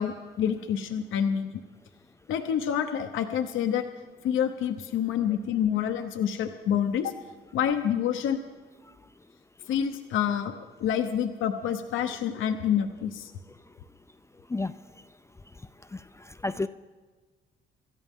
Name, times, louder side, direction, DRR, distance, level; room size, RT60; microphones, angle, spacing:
voice 1, 0.0-1.6 2.3-3.8 4.2-7.1 7.5-8.4 9.7-13.3, left 9 dB, 80° left, 6 dB, 0.8 m, -27 dB
voice 2, 15.9-16.7, left 2 dB, 15° left, 11 dB, 0.4 m, -31 dB
26.5 x 13.5 x 3.7 m, 1.4 s
cardioid pair, 90°, 20 cm